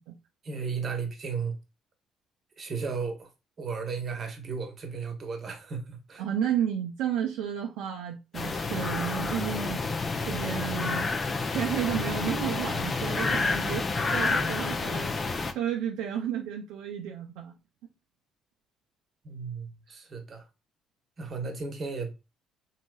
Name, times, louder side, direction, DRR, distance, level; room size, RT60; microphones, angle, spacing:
voice 1, 0.4-1.6 2.6-3.3 3.6-6.2 19.2-20.4 21.2-22.1, right 5 dB, 45° right, 0.9 m, -34 dB
voice 2, 6.2-11.1 11.5-13.8 14.1-17.6, right 9 dB, 80° right, 0.4 m, -32 dB
sound 1, 8.3-15.5, left 3 dB, 40° left, 0.5 m, -29 dB
3.1 x 2.7 x 2.2 m
hypercardioid pair, 60°, 0 cm